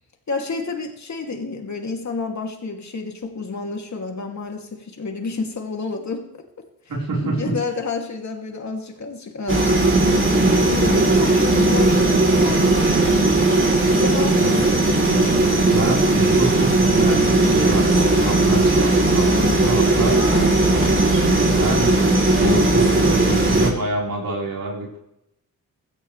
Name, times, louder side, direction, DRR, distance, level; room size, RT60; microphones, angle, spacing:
voice 1, 0.3-6.4 7.2-9.8 10.7-12.9 13.9-14.9 20.1-20.7, left 4 dB, 55° left, 2 dB, 2.9 m, -30 dB
voice 2, 6.9-7.6 14.4-14.6 15.7-20.2 20.7-25.0, right 2 dB, 85° right, -3 dB, 4.8 m, -27 dB
sound 1, 9.5-23.7, right 2 dB, 35° right, 3.5 m, -17 dB
17.0 x 13.5 x 3.4 m, 0.79 s
wide cardioid pair, 90°, 33 cm